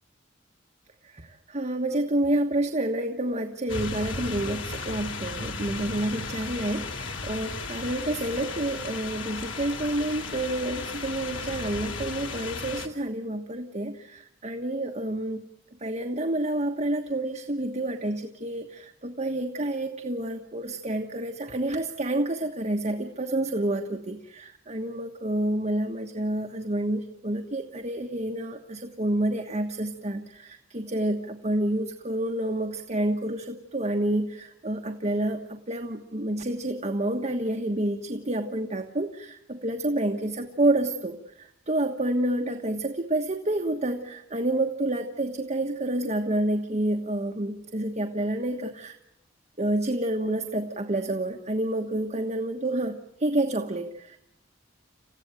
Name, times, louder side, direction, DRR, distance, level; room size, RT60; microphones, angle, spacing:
voice 1, 1.0-15.4 15.8-49.0 49.6-54.2, right 1 dB, 35° right, 4 dB, 1.3 m, -29 dB
sound 1, 3.7-12.9, left 3 dB, 80° left, 2.4 m, -35 dB
28.0 x 15.5 x 9.1 m, 0.85 s
head